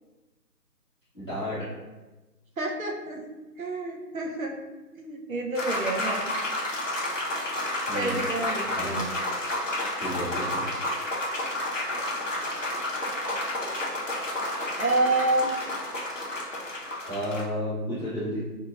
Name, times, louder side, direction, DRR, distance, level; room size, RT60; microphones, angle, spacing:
voice 1, 1.1-1.7 7.9-8.2 8.8-9.0 10.0-10.6 17.1-18.5, equal, 15° left, -18 dB, 1.1 m, -32 dB
voice 2, 2.6-3.2 3.6-4.5 5.0-6.3 7.9-9.1 14.8-15.5, right 2 dB, 60° right, 1 dB, 0.7 m, -28 dB
sound 1, 5.5-17.4, left 1 dB, 50° left, 0.7 m, -31 dB
4.1 x 2.8 x 2.3 m, 1.1 s
figure-of-eight pair, 155°, 48 cm